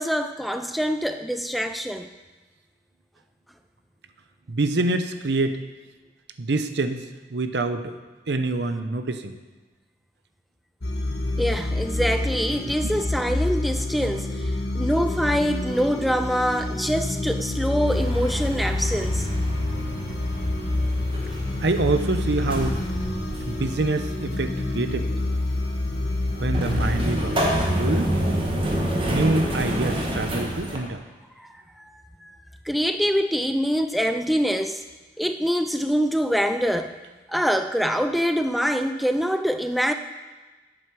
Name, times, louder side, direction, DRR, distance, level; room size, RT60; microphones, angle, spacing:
voice 1, 0.0-2.1 11.4-19.3 31.4-31.5 31.8-31.9 32.2-32.3 32.7-34.8 35.2-36.9 37.3-39.9, equal, ahead, 7 dB, 0.3 m, -24 dB
voice 2, 4.5-5.6 6.4-8.0 8.3-9.4 12.7-13.0 21.6-22.8 23.5-25.3 26.4-28.1 29.0-31.0, right 2 dB, 80° right, 9 dB, 0.7 m, -26 dB
sound 1, 10.8-27.7, left 2 dB, 70° left, 1.3 m, -28 dB
sound 2, 17.9-30.8, equal, 30° right, 1.4 m, -28 dB
8.8 x 7.8 x 6.0 m, 1.2 s
head